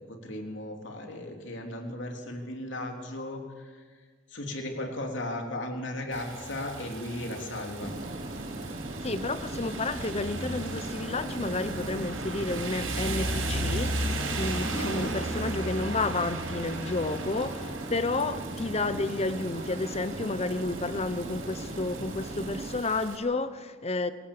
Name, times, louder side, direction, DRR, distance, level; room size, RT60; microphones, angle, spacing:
voice 1, 0.0-3.9 4.3-7.9, left 1 dB, 60° left, 3.3 m, -36 dB
Rain, 6.1-23.2, right 2 dB, 85° right, 5.3 m, -36 dB
sound 1, 7.8-22.8, right 1 dB, 35° right, 1.1 m, -39 dB
voice 2, 9.0-24.1, left 2 dB, 30° left, 0.9 m, -31 dB
26.5 x 17.0 x 7.0 m
head